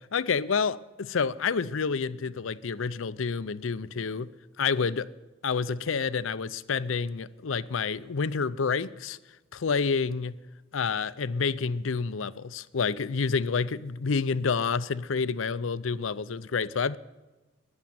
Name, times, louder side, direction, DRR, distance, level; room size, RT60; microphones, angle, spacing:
voice 1, 0.1-4.3 4.6-5.1 5.4-9.2 9.5-10.3 10.7-17.0, left 5 dB, 85° left, 0.6 m, -28 dB
14.5 x 10.5 x 9.3 m
head